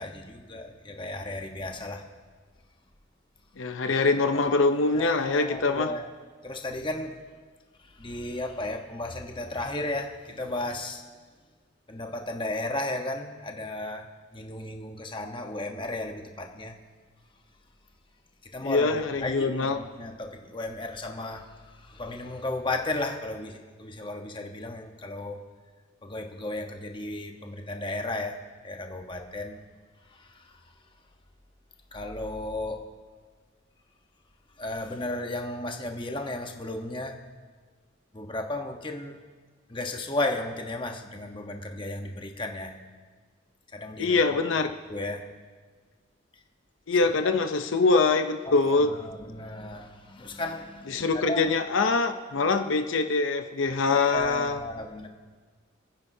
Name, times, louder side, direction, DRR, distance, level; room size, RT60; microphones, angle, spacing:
voice 1, 0.0-2.0 4.9-6.1 6.4-7.1 7.9-11.0 11.9-16.8 18.5-25.4 26.0-28.4 28.6-29.6 30.1-30.6 31.9-32.8 34.6-37.2 38.1-39.2 39.7-42.7 43.7-44.2 44.9-45.2 47.2-47.3 48.4-51.5 52.4-52.5 53.9-55.1, left 2 dB, 25° left, 3 dB, 1.0 m, -34 dB
voice 2, 3.6-5.9 18.6-19.8 44.0-44.7 46.9-48.9 50.9-54.6, left 3 dB, 75° left, 7 dB, 0.7 m, -24 dB
28.5 x 9.8 x 2.7 m, 1.5 s
head